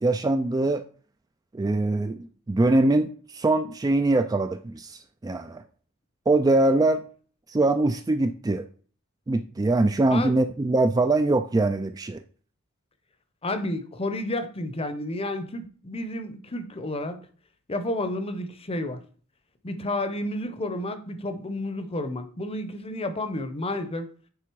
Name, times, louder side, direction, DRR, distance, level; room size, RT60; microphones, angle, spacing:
voice 1, 0.0-0.8 1.5-5.6 6.3-7.0 7.5-8.6 9.3-12.2, right 2 dB, 15° right, 0.3 m, -23 dB
voice 2, 13.4-17.2 17.7-19.0 19.6-24.1, left 1 dB, 25° left, 0.8 m, -31 dB
9.3 x 3.7 x 4.6 m
head